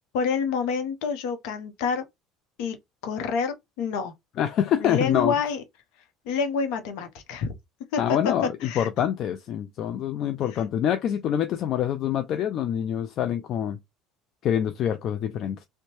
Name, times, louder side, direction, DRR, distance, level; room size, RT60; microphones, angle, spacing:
voice 1, 0.1-2.0 2.6-2.8 3.0-4.1 4.8-5.6 6.3-7.5 7.9-8.0 8.6-8.9 10.5-10.6, left 5 dB, 70° left, 0.7 m, -28 dB
voice 2, 4.4-5.3 8.0-13.8 14.4-15.6, left 10 dB, 55° left, 0.4 m, -26 dB
2.7 x 2.1 x 3.0 m
hypercardioid pair, 70°, 0 cm